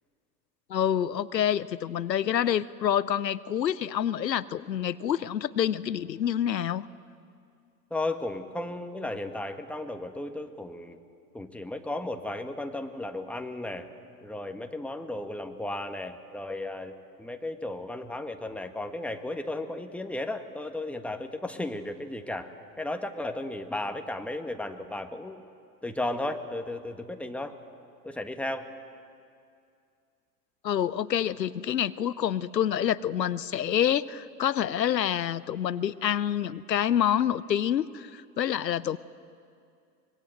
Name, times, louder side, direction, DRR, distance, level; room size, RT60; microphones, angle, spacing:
voice 1, 0.7-6.9 30.6-39.0, left 10 dB, 90° left, 18 dB, 0.6 m, -27 dB
voice 2, 7.9-11.0 11.3-13.9 14.2-16.9 17.2-22.5 22.8-25.4 25.8-27.6 28.0-28.7, left 2 dB, 5° left, 6 dB, 1.6 m, -34 dB
24.5 x 21.0 x 7.8 m, 2.4 s
figure-of-eight pair, 80°, 49 cm